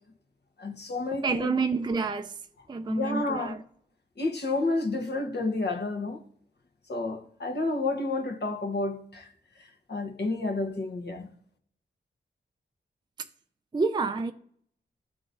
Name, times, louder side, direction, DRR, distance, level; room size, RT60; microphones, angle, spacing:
voice 1, 0.6-1.5 2.9-3.6 4.2-6.2 6.9-9.3 9.9-11.3, left 2 dB, 60° left, 1.1 m, -30 dB
voice 2, 1.2-2.4 2.7-3.6 13.7-14.3, right 4 dB, 20° right, 0.4 m, -28 dB
11.0 x 3.8 x 2.6 m
cardioid pair, 40°, 20 cm